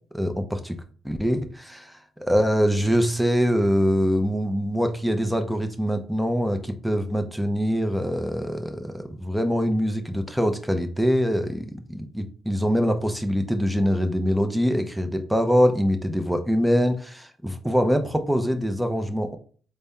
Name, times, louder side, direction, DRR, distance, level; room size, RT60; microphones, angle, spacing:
voice 1, 0.1-1.9 2.2-19.4, equal, ahead, 6 dB, 0.6 m, -24 dB
4.0 x 2.2 x 3.6 m, 0.42 s
cardioid pair, 90°, 0 cm